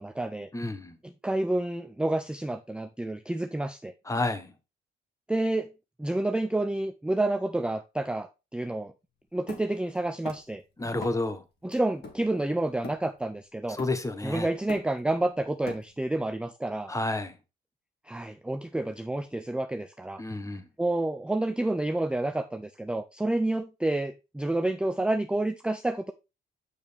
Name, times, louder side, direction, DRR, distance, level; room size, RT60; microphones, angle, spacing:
voice 1, 0.0-0.5 1.0-3.9 5.3-5.7 6.0-8.9 9.3-10.6 11.6-13.8 14.2-16.9 18.1-20.2 20.8-26.1, right 2 dB, 5° right, 0.5 m, -29 dB
voice 2, 0.5-1.0 4.1-4.5 10.8-11.4 13.7-14.5 16.9-17.4 20.2-20.6, left 2 dB, 15° left, 1.2 m, -30 dB
Hammer, 9.5-10.6 11.0-11.3 11.7-13.3 13.8-14.2 14.5-16.2, left 4 dB, 55° left, 2.4 m, -43 dB
6.7 x 6.3 x 3.5 m
cardioid pair, 90°, 20 cm